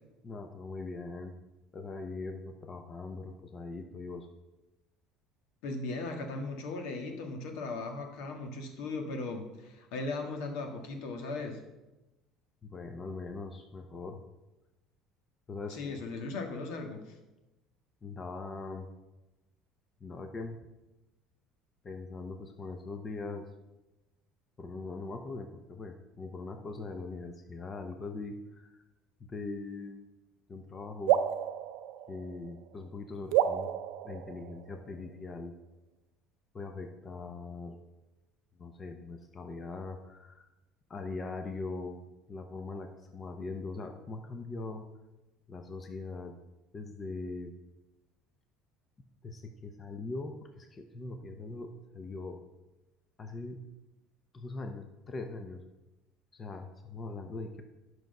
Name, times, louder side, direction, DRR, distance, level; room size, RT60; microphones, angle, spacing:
voice 1, 0.2-1.3 1.7-4.3 12.6-14.2 15.5-16.0 18.0-18.9 20.0-20.6 21.8-23.5 24.6-28.8 29.2-30.0 30.5-31.2 32.1-33.7 34.0-35.6 36.5-37.8 38.6-40.5 40.9-42.0 42.3-44.9 45.5-46.3 46.7-47.5 49.2-52.4 53.2-53.6 54.3-55.6 56.3-57.6, left 3 dB, 20° left, 5 dB, 0.6 m, -41 dB
voice 2, 5.6-11.6 15.7-17.1, left 3 dB, 75° left, 3 dB, 1.5 m, -37 dB
sound 1, 31.1-32.7 33.3-35.0, right 11 dB, 75° right, 0.5 m, -31 dB
10.0 x 6.1 x 5.3 m, 1.0 s
cardioid pair, 160°, 0 cm